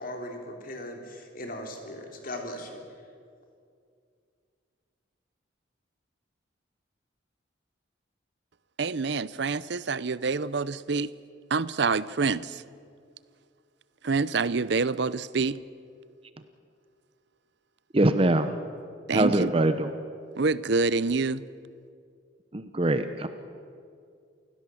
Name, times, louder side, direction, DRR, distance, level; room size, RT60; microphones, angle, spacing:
voice 1, 0.0-2.8, left 1 dB, 45° left, 3 dB, 3.4 m, -38 dB
voice 2, 8.8-11.1 11.5-12.6 14.0-15.6 19.1-19.5 20.4-21.4, right 4 dB, 60° right, 18 dB, 0.6 m, -27 dB
voice 3, 17.9-18.5 19.1-19.9 22.5-23.3, right 1 dB, 30° right, 10 dB, 0.8 m, -23 dB
29.0 x 16.5 x 7.7 m, 2.3 s
head